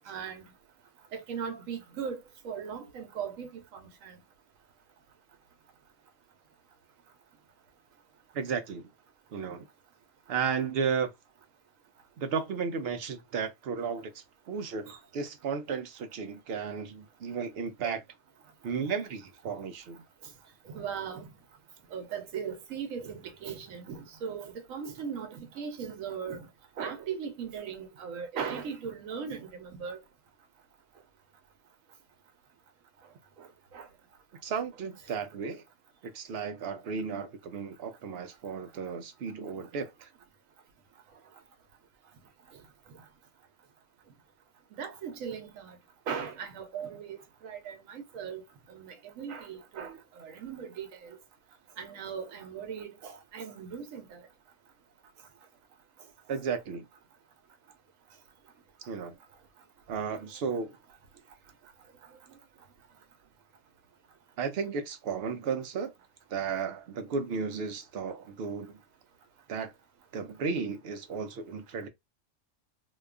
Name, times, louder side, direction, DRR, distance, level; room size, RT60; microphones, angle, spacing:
voice 1, 0.1-0.5 1.1-2.2 2.4-4.2 14.9-15.0 20.7-21.3 21.9-26.5 26.8-30.0 33.4-33.9 44.8-45.8 46.1-48.4 48.7-51.2 51.8-54.2, right 7 dB, 85° right, 1.1 m, -38 dB
voice 2, 8.3-8.9 9.3-9.7 10.3-11.1 12.2-18.0 18.6-20.0 34.4-35.6 36.0-40.1 56.3-56.9 58.8-59.1 59.9-60.8 64.4-65.9 66.3-68.8 69.5-69.7 70.1-71.9, right 5 dB, 60° right, 0.7 m, -34 dB
2.7 x 2.3 x 2.3 m
omnidirectional pair, 1.4 m